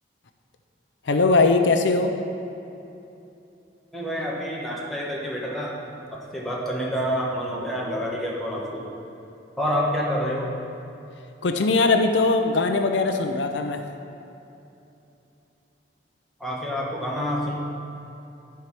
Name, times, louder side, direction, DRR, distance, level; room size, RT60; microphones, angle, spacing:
voice 1, 1.1-2.1 11.4-13.8, left 3 dB, 80° left, 6 dB, 0.6 m, -20 dB
voice 2, 3.9-5.7 6.2-8.8 9.6-10.5 16.4-17.5, equal, ahead, -5 dB, 1.4 m, -28 dB
11.5 x 4.7 x 6.0 m, 2.9 s
head